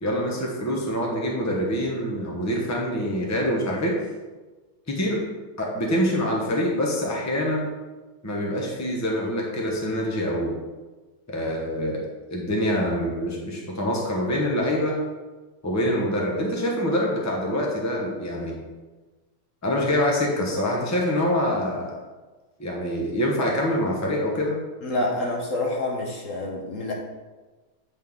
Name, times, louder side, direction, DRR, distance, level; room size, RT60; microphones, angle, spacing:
voice 1, 0.0-4.0 4.9-5.2 5.6-7.7 8.2-10.6 11.3-15.0 15.6-18.6 19.6-21.9 22.6-24.5, equal, 15° left, -2 dB, 0.7 m, -25 dB
voice 2, 24.8-26.9, left 2 dB, 50° left, -1 dB, 1.0 m, -27 dB
9.6 x 4.2 x 3.7 m, 1.3 s
omnidirectional pair, 2.4 m